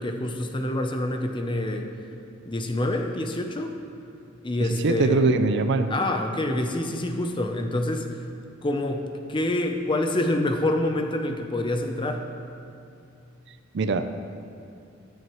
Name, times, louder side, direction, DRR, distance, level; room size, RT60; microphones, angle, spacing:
voice 1, 0.0-1.9 2.5-3.7 4.4-5.2 5.9-8.2 8.6-12.2, left 1 dB, 25° left, 5 dB, 0.7 m, -27 dB
voice 2, 4.6-5.9 13.7-14.0, right 3 dB, 60° right, 9 dB, 0.5 m, -22 dB
14.0 x 10.5 x 3.1 m, 2.6 s
head